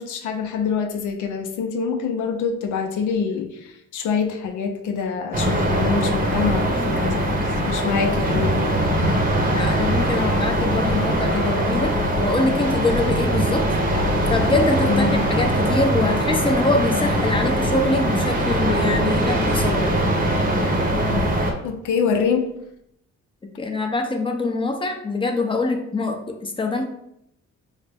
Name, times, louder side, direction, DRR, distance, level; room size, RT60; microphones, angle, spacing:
voice 1, 0.0-8.8 14.9-15.2 21.6-22.5, left 5 dB, 80° left, 5 dB, 0.6 m, -25 dB
sound 1, 5.3-21.5, right 1 dB, 30° right, 0.8 m, -21 dB
voice 2, 9.4-13.7 14.3-19.9 23.6-26.8, left 2 dB, 15° left, 4 dB, 0.6 m, -24 dB
4.8 x 2.1 x 3.4 m, 0.78 s
cardioid pair, 90°, 30 cm